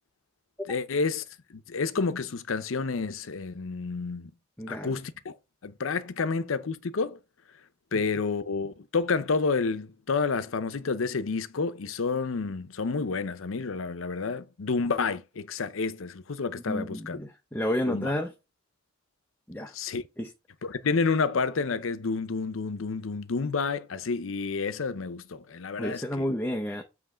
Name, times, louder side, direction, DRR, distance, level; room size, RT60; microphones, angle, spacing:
voice 1, 0.7-1.2 1.5-4.3 4.7-5.4 5.6-7.2 7.9-17.2 17.9-18.1 19.7-20.0 20.6-26.2, left 4 dB, 75° left, 0.6 m, -29 dB
voice 2, 4.6-5.0 16.7-18.3 19.5-19.7 20.2-20.3 25.8-26.8, equal, 10° left, 0.7 m, -31 dB
7.9 x 3.1 x 5.0 m
head